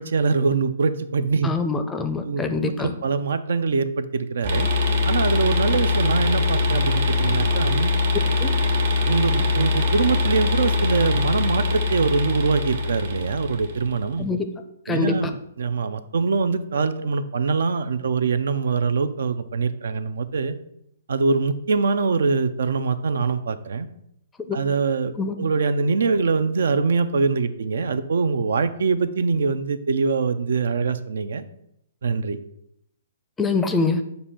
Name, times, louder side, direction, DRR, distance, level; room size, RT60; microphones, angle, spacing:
voice 1, 0.0-1.5 2.2-4.7 5.1-7.9 9.1-14.3 14.9-20.6 21.1-23.9 24.5-31.4 32.0-32.4, right 4 dB, 75° right, 12 dB, 0.5 m, -23 dB
voice 2, 1.4-2.9 8.4-8.5 14.2-14.5 14.9-15.1 24.5-24.6 25.2-25.3 33.4-34.0, left 4 dB, 10° left, 8 dB, 0.5 m, -24 dB
sound 1, 4.4-13.9, left 3 dB, 55° right, 1.2 m, -22 dB
6.8 x 2.6 x 5.6 m, 0.78 s
hypercardioid pair, 155°, 0 cm